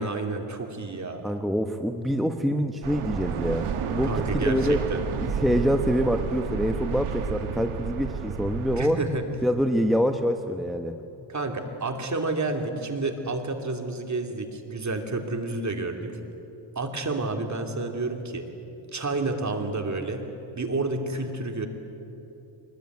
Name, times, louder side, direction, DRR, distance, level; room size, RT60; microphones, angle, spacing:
voice 1, 0.0-1.2 4.0-5.0 8.8-9.2 11.3-16.2 16.7-18.5 18.9-20.2 20.6-21.7, right 3 dB, 35° right, 4 dB, 2.9 m, -30 dB
voice 2, 1.2-4.8 5.2-9.0 9.4-11.0, equal, ahead, 5 dB, 1.0 m, -25 dB
sound 1, 2.8-8.8, right 7 dB, 85° right, 1.6 m, -31 dB
24.0 x 20.0 x 9.5 m, 3.0 s
cardioid pair, 110°, 49 cm